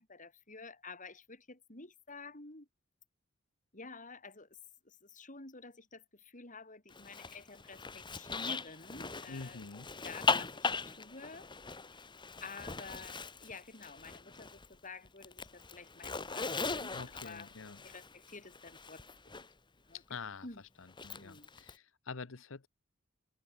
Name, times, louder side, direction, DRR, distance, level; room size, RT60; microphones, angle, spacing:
voice 1, 0.0-2.7 3.7-4.5 4.8-9.6 10.0-11.5 12.4-17.5 17.8-19.0 19.9-20.6 21.1-21.5, left 3 dB, 40° left, 6.4 m, -50 dB
Zipper (clothing), 6.9-14.8 15.0-19.5 20.9-21.7, left 4 dB, 25° left, 1.5 m, -39 dB
voice 2, 9.3-9.9 16.9-17.8 19.9-20.5 20.8-22.7, left 4 dB, 70° left, 0.9 m, -46 dB
open air
head